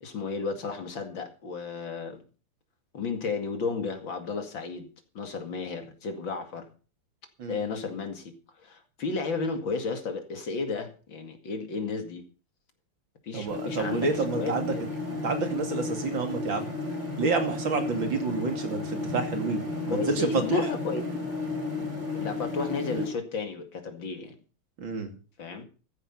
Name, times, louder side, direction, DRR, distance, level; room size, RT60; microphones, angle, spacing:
voice 1, 0.0-2.2 2.9-4.9 5.1-6.7 7.5-12.2 13.2-14.8 19.9-21.0 22.1-24.4 25.4-25.6, left 4 dB, 60° left, 3.0 m, -33 dB
voice 2, 13.3-14.7 15.2-16.7 17.2-20.7 24.8-25.1, right 4 dB, 60° right, 3.3 m, -29 dB
sound 1, 13.5-23.1, left 3 dB, 20° right, 4.3 m, -33 dB
14.0 x 10.5 x 5.6 m
omnidirectional pair, 2.4 m